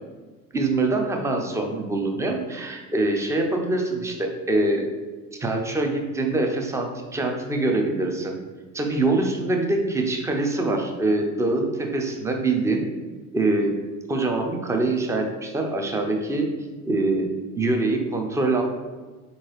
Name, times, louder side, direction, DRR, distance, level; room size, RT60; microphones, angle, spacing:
voice 1, 0.5-4.9 5.4-8.3 8.7-12.8 13.3-13.7 14.1-16.5 16.9-17.3 17.6-18.6, right 2 dB, 5° right, 3 dB, 0.5 m, -24 dB
4.5 x 3.8 x 3.0 m, 1.3 s
figure-of-eight pair, 70°, 45 cm